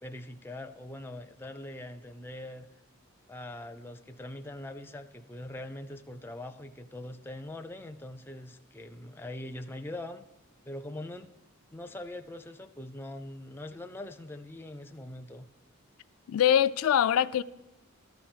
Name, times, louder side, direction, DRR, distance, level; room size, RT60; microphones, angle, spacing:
voice 1, 0.0-2.7 3.3-10.3 10.6-11.3 11.7-15.5, left 1 dB, 10° left, 0.4 m, -42 dB
voice 2, 16.3-17.4, left 9 dB, 85° left, 0.3 m, -23 dB
13.5 x 4.6 x 8.8 m
head